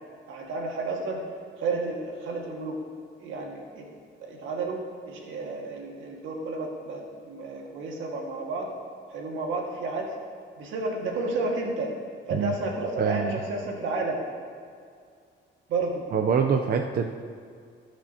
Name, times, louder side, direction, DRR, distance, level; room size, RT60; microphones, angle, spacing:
voice 1, 0.3-1.2 1.6-2.8 3.2-3.9 4.2-8.7 9.1-10.1 10.6-11.9 12.3-14.2 15.7-16.1, right 3 dB, 80° right, -1 dB, 1.8 m, -31 dB
voice 2, 13.0-13.4 16.1-17.3, right 6 dB, 50° right, 4 dB, 0.6 m, -25 dB
17.5 x 6.2 x 2.8 m, 2.2 s
cardioid pair, 90°, 20 cm